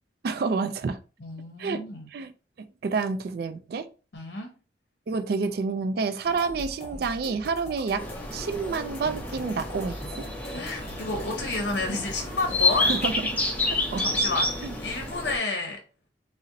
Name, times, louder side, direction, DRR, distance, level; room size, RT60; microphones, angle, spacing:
voice 1, 0.2-1.0 1.6-1.8 2.1-2.3 2.8-3.9 5.1-8.0 8.3-10.3 12.8-13.1 13.7-14.1 14.6-14.7, right 4 dB, 55° right, 0.3 m, -29 dB
voice 2, 1.2-2.1 4.1-4.5 10.5-12.9 14.0-14.5 14.8-15.8, left 3 dB, 65° left, 0.7 m, -30 dB
sound 1, 6.2-13.1, equal, 30° left, 0.9 m, -42 dB
sound 2, 8.0-15.4, left 2 dB, 10° left, 0.5 m, -29 dB
3.8 x 2.0 x 2.6 m
head